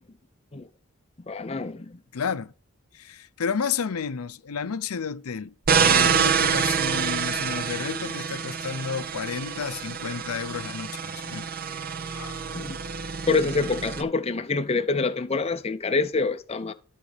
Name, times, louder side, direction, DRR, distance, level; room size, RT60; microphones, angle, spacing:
voice 1, 1.3-2.0 12.5-12.8 13.3-16.7, left 4 dB, 30° left, 0.5 m, -26 dB
voice 2, 2.1-2.5 2.9-11.5 12.1-12.6, left 6 dB, 90° left, 0.6 m, -32 dB
sound 1, 5.7-14.0, right 6 dB, 45° right, 0.6 m, -26 dB
13.0 x 5.2 x 3.3 m
head